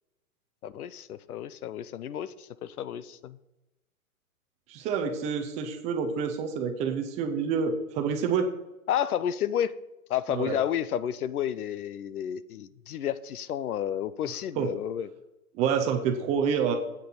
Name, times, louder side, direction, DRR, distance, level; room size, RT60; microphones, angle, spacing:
voice 1, 0.6-3.4 8.9-9.7 10.1-15.1, left 10 dB, 80° left, 16 dB, 0.8 m, -31 dB
voice 2, 4.7-8.5 10.3-10.6 14.6-14.7 15.5-16.8, right 6 dB, 15° right, 6 dB, 0.5 m, -28 dB
8.5 x 6.4 x 7.1 m, 0.98 s
hypercardioid pair, 140°, 44 cm